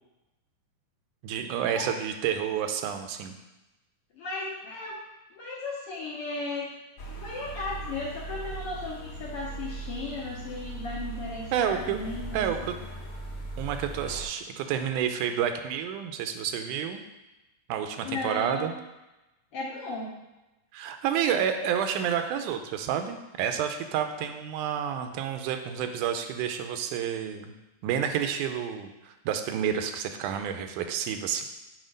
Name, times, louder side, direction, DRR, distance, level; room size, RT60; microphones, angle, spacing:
voice 1, 1.2-3.3 11.5-12.0 12.3-12.8 13.6-17.0 17.7-18.7 20.7-27.5 27.8-31.4, right 8 dB, 85° right, 7 dB, 2.1 m, -29 dB
voice 2, 4.2-5.0 5.3-6.7 7.1-12.7 18.0-18.7 19.5-20.2, left 3 dB, 70° left, -4 dB, 1.4 m, -35 dB
sound 1, 7.0-14.2, right 2 dB, 50° left, 1.5 m, -39 dB
6.3 x 4.4 x 5.1 m, 1.0 s
omnidirectional pair, 3.6 m